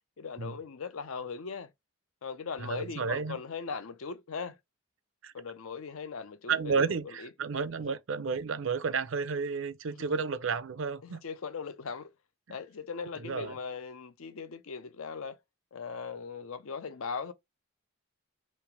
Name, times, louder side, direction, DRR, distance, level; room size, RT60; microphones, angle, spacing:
voice 1, 0.2-1.7 2.2-4.6 5.3-7.3 9.9-10.2 11.0-12.1 12.5-15.4 15.7-17.3, left 5 dB, 75° left, 0.6 m, -39 dB
voice 2, 2.6-3.4 5.2-5.3 6.5-11.2 13.2-13.6, right 5 dB, 65° right, 0.5 m, -32 dB
3.3 x 2.9 x 4.7 m
head